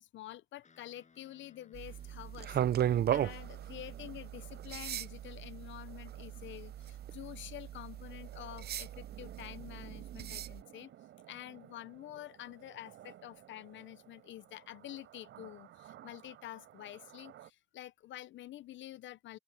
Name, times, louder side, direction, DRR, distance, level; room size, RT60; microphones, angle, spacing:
voice 1, 0.0-10.9 11.3-19.4, left 13 dB, 70° left, 0.7 m, -48 dB
Guitar, 0.6-8.3, left 5 dB, 35° left, 6.2 m, -66 dB
sound 1, 1.8-10.6, right 10 dB, 55° right, 0.6 m, -37 dB
sound 2, 3.1-17.5, right 12 dB, 80° right, 4.2 m, -56 dB
open air
cardioid pair, 90°, 20 cm